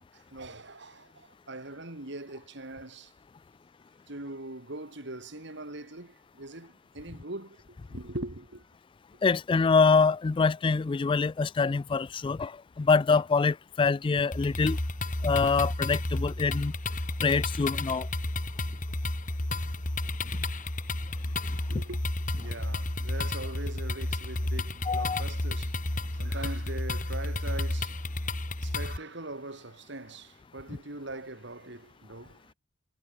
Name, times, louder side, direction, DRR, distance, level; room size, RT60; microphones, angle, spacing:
voice 1, 0.0-3.1 4.1-8.6 21.5-22.0 22.4-28.3 28.6-32.5, right 2 dB, 65° right, 3.0 m, -42 dB
voice 2, 9.2-12.5 12.8-14.8 15.2-16.7 17.2-18.1 24.9-25.2, left 4 dB, 25° left, 0.3 m, -25 dB
sound 1, 14.3-29.0, left 2 dB, 45° left, 2.3 m, -32 dB
head